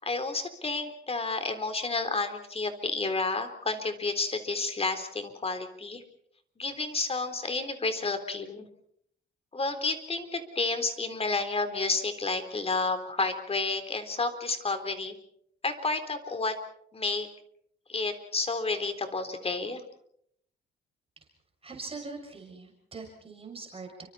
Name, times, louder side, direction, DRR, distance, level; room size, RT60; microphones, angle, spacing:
voice 1, 0.0-6.0 6.6-8.7 9.5-15.1 15.6-16.5 16.9-17.3 17.9-19.8, left 3 dB, 30° left, 8 dB, 3.8 m, -30 dB
voice 2, 21.6-24.0, right 3 dB, 30° right, 2 dB, 6.2 m, -42 dB
29.5 x 24.5 x 4.3 m, 0.70 s
cardioid pair, 90°, 20 cm